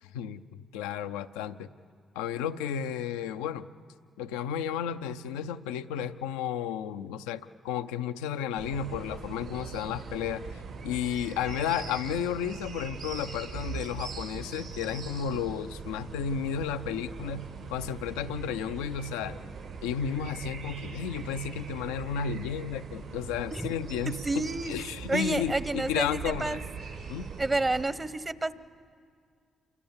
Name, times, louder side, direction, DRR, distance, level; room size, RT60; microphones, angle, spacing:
voice 1, 0.0-1.7 2.1-3.6 4.2-10.4 10.8-19.4 19.8-26.6 27.1-27.3, left 8 dB, 90° left, 10 dB, 0.6 m, -33 dB
sound 1, 8.6-27.8, right 5 dB, 80° right, 5.1 m, -41 dB
voice 2, 24.2-24.7 25.1-26.6 27.4-28.5, right 2 dB, 30° right, 15 dB, 1.0 m, -29 dB
28.0 x 24.5 x 7.2 m, 2.2 s
hypercardioid pair, 50°, 0 cm